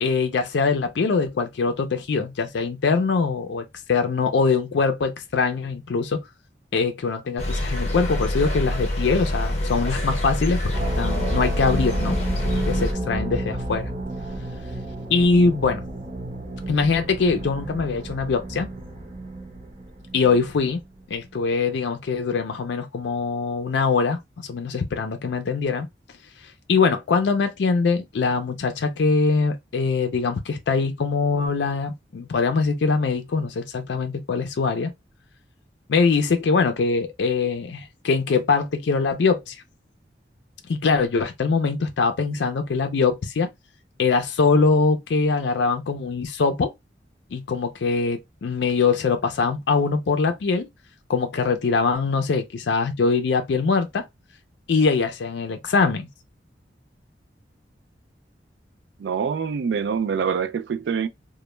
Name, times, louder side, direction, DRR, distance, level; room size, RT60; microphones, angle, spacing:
voice 1, 0.0-6.2 6.7-12.2 12.4-13.9 15.1-15.8 16.7-18.7 20.1-20.8 21.1-25.9 26.7-34.9 35.9-39.6 40.7-43.5 44.0-46.7 47.3-50.7 51.1-54.0 54.7-56.1, left 4 dB, 75° left, 0.4 m, -22 dB
sound 1, 7.4-12.9, left 1 dB, 35° left, 0.8 m, -26 dB
sound 2, 10.7-20.6, right 1 dB, 30° right, 0.7 m, -31 dB
voice 2, 59.0-61.1, right 6 dB, 75° right, 0.3 m, -25 dB
2.1 x 2.1 x 3.0 m
head